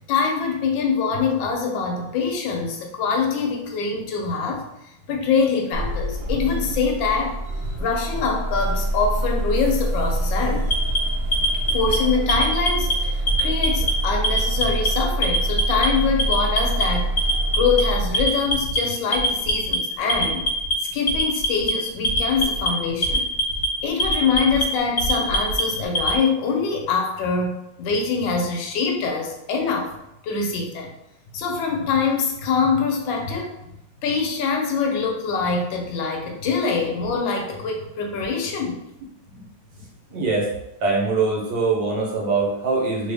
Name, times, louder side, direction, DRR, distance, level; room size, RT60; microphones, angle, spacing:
voice 1, 0.0-4.7 5.1-10.7 11.7-17.1 17.5-20.5 20.9-23.3 23.8-29.9 30.2-30.9 31.3-33.6 34.0-38.8, left 5 dB, 75° left, 2 dB, 1.2 m, -24 dB
sound 1, 5.7-18.1, right 1 dB, 80° right, 0.7 m, -26 dB
Alarm, 10.6-11.9 12.3-12.9 13.3-13.9 14.2-14.9 15.2-15.9 16.2-16.8 17.2-17.8 18.1-18.8 19.1-19.8 20.1-20.7 21.1-21.7 22.0-22.7 23.0-23.7 24.0-24.6 25.0-26.2, equal, 45° left, 0.8 m, -22 dB
voice 2, 40.1-40.5 40.8-43.1, right 3 dB, 65° right, -2 dB, 1.4 m, -23 dB
3.4 x 2.4 x 3.3 m, 0.85 s
omnidirectional pair, 2.3 m